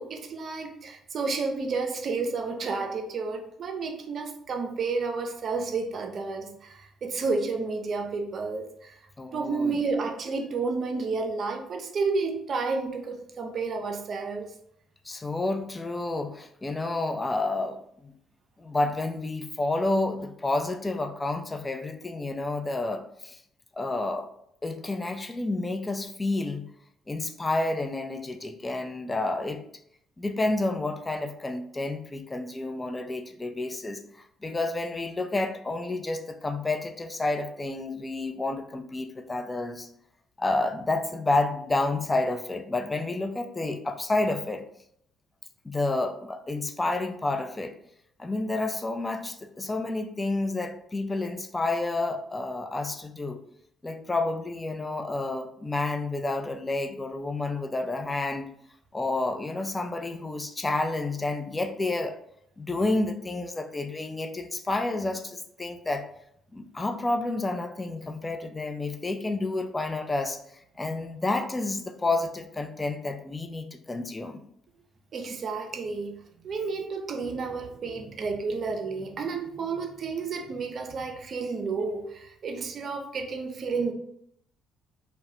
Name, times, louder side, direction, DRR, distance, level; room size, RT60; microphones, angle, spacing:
voice 1, 0.0-9.0 9.3-14.5 75.1-76.2 76.4-83.9, right 4 dB, 50° right, 4 dB, 0.4 m, -31 dB
voice 2, 9.2-9.8 15.1-18.1 18.6-23.4 23.8-24.3 24.6-26.7 27.1-29.6 30.2-34.0 34.4-39.9 40.4-44.6 45.6-47.7 48.2-53.4 53.8-58.5 58.9-62.2 62.6-66.1 66.5-70.4 70.8-74.4, left 2 dB, 25° left, 7 dB, 0.3 m, -30 dB
2.2 x 2.1 x 2.9 m, 0.72 s
hypercardioid pair, 50°, 0 cm